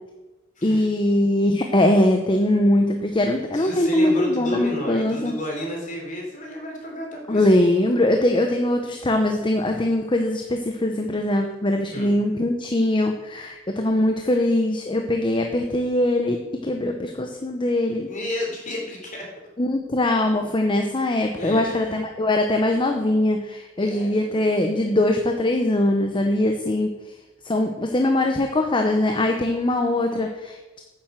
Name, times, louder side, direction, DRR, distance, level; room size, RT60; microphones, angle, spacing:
voice 1, 0.6-5.3 7.3-18.1 19.6-26.9 27.4-30.8, left 1 dB, 25° left, 4 dB, 0.8 m, -22 dB
voice 2, 3.3-7.5 11.9-12.1 18.1-19.3 21.4-22.0 23.8-24.5, left 1 dB, 40° left, 0 dB, 3.4 m, -31 dB
9.6 x 7.5 x 7.4 m, 1.1 s
head